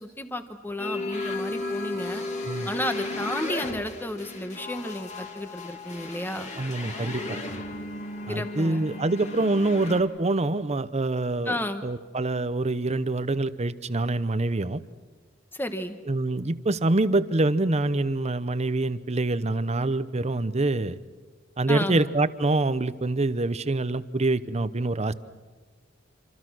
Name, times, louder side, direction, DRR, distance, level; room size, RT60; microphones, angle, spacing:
voice 1, 0.0-2.2 2.7-6.5 8.3-8.8 11.4-11.8 15.5-16.0 21.7-22.0, left 1 dB, 10° left, 8 dB, 1.2 m, -32 dB
sound 1, 0.8-10.0, left 2 dB, 35° left, 2.6 m, -34 dB
voice 2, 6.6-7.4 8.3-11.6 11.8-14.8 16.1-21.0 21.6-25.1, right 2 dB, 35° right, 14 dB, 0.8 m, -25 dB
27.0 x 26.5 x 6.3 m, 1.3 s
head